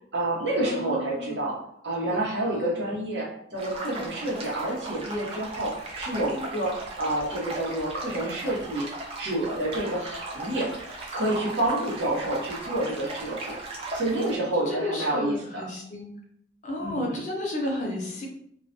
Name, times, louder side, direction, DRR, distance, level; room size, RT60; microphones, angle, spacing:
voice 1, 0.1-1.6 1.8-8.9 9.2-13.6 13.9-15.6 16.8-17.2, right 1 dB, 75° right, -4 dB, 0.9 m, -29 dB
voice 2, 0.6-1.5 2.1-2.8 14.7-16.1 16.6-18.3, left 1 dB, 40° left, -1 dB, 0.6 m, -33 dB
sound 1, 3.6-14.4, right 2 dB, 30° right, 0.5 m, -37 dB
2.3 x 2.1 x 2.5 m, 0.69 s
head